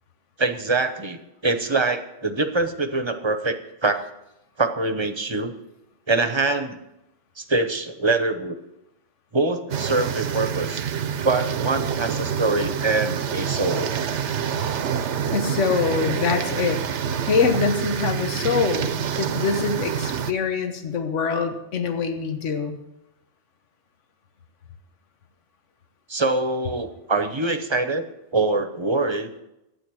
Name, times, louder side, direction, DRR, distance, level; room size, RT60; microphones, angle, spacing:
voice 1, 0.4-4.0 4.6-5.5 6.1-6.8 7.4-8.6 9.3-10.8 11.2-14.0 26.1-28.1 28.3-29.4, right 3 dB, 25° right, 8 dB, 0.8 m, -24 dB
sound 1, 9.7-20.3, right 8 dB, 75° right, 1.0 m, -27 dB
voice 2, 15.3-16.8 17.3-18.9 19.2-22.8, left 5 dB, 85° left, 7 dB, 1.4 m, -24 dB
12.0 x 9.2 x 6.2 m, 0.89 s
omnidirectional pair, 1.2 m